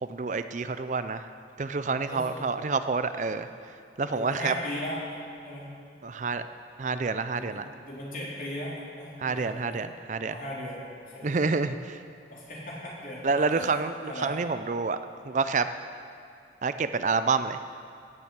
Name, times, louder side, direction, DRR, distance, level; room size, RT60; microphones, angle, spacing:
voice 1, 0.0-1.3 1.6-3.5 4.0-4.5 6.0-6.5 6.8-7.7 9.2-10.4 11.2-12.0 13.2-15.0 15.2-15.7 16.6-17.6, right 4 dB, 45° right, 11 dB, 0.5 m, -28 dB
voice 2, 2.0-2.5 4.1-5.0 5.4-5.7 7.3-9.8 10.2-11.5 12.3-13.2 13.5-14.4, left 1 dB, 50° left, -5 dB, 4.0 m, -38 dB
16.5 x 7.5 x 8.2 m, 2.6 s
head